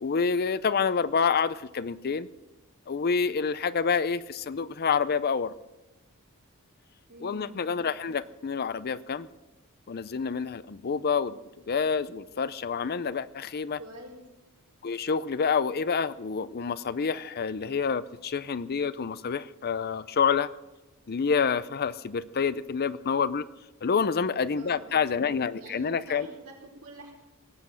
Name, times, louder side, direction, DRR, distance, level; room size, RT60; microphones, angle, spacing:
voice 1, 0.0-2.3 2.9-5.5 7.2-9.3 9.9-11.4 11.7-13.8 14.8-20.5 21.1-23.5 23.8-26.3, left 6 dB, 45° left, 17 dB, 0.5 m, -28 dB
voice 2, 7.1-7.5 13.8-14.2 24.5-25.0 25.6-27.1, right 1 dB, 75° right, 0 dB, 4.5 m, -46 dB
18.5 x 8.4 x 7.6 m, 1.0 s
head